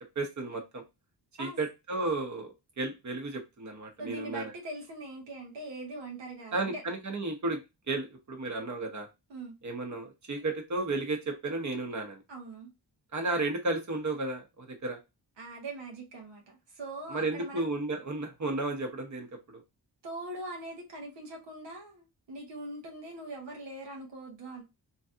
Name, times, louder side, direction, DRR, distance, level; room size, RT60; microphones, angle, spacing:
voice 1, 0.1-0.8 1.4-2.5 2.8-4.5 6.5-7.6 7.9-9.1 9.6-12.2 13.1-15.0 17.1-19.6, right 2 dB, 45° right, 1.0 m, -33 dB
voice 2, 4.0-6.8 9.3-9.5 12.3-12.7 15.4-17.7 20.0-24.6, right 2 dB, 85° right, 1.0 m, -42 dB
3.1 x 2.8 x 2.4 m
cardioid pair, 85°, 41 cm